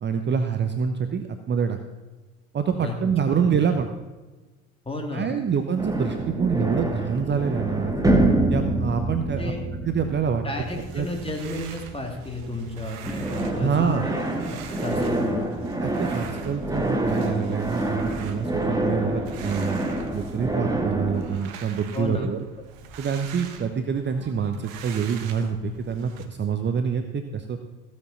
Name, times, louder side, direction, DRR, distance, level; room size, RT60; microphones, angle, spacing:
voice 1, 0.0-1.8 2.5-3.9 5.1-7.9 8.5-9.5 9.8-10.4 10.9-11.1 13.6-14.1 15.8-19.8 20.1-22.4 23.0-27.6, right 6 dB, 25° right, 7 dB, 0.9 m, -26 dB
voice 2, 3.3-3.6 4.8-5.4 9.4-9.7 10.4-15.6 21.9-22.3, left 2 dB, 15° left, 2 dB, 2.8 m, -32 dB
sound 1, 5.8-12.7 13.1-21.4, right 1 dB, 10° right, 1.7 m, -27 dB
sound 2, 10.5-26.3, right 7 dB, 60° right, 1.4 m, -44 dB
16.0 x 7.5 x 5.7 m, 1.2 s
figure-of-eight pair, 70°, 41 cm